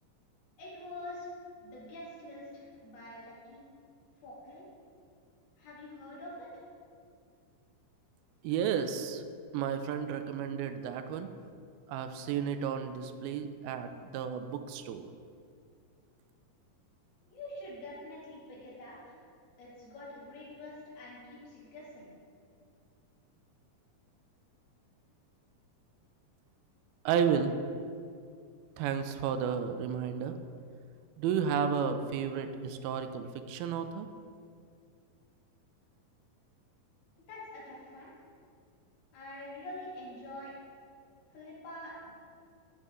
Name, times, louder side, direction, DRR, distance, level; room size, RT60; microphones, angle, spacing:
voice 1, 0.6-1.3 1.6-3.6 4.2-4.7 5.6-6.6 17.2-19.2 19.6-22.1 37.1-38.1 39.1-40.5 41.3-42.1, left 1 dB, 80° left, -7 dB, 4.2 m, -46 dB
voice 2, 8.4-9.2 9.5-11.3 11.9-15.0 27.1-27.6 28.8-30.4 31.2-34.1, right 7 dB, 85° right, 9 dB, 2.4 m, -32 dB
12.5 x 5.5 x 3.6 m, 2.3 s
omnidirectional pair, 4.4 m